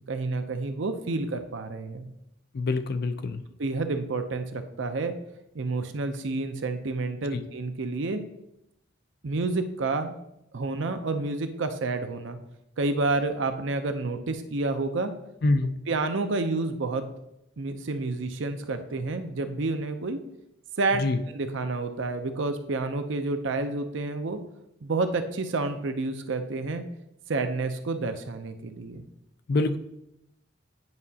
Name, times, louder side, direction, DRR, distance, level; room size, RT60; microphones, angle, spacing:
voice 1, 0.1-2.1 3.6-5.1 5.5-8.2 9.2-10.1 10.5-12.4 12.8-15.1 15.9-17.0 17.6-20.2 20.8-21.1 21.3-24.4 24.8-26.8 27.3-29.0, right 3 dB, 65° right, 8 dB, 0.6 m, -29 dB
voice 2, 2.5-3.4 7.3-7.4 15.4-15.7 20.9-21.2 29.5-29.8, left 2 dB, 50° left, 10 dB, 0.4 m, -25 dB
9.6 x 4.8 x 2.8 m, 0.84 s
head